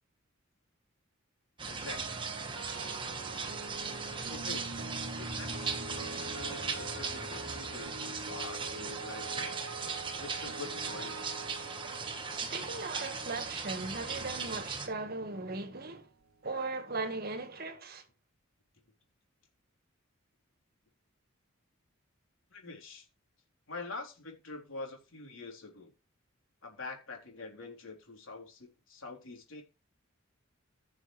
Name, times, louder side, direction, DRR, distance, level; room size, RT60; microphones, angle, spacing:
sound 1, 1.6-14.9, right 4 dB, 25° right, 1.4 m, -38 dB
voice 1, 1.7-2.0 4.3-4.8 5.2-9.6 10.2-11.3 22.5-23.1 23.7-25.9 26.6-29.6, left 3 dB, 75° left, 3.6 m, -46 dB
sound 2, 1.7-15.8 16.0-16.3, right 3 dB, 85° right, 0.7 m, -46 dB
voice 2, 12.3-16.1 16.4-18.0, right 3 dB, 50° right, 1.6 m, -38 dB
15.5 x 6.2 x 3.3 m
head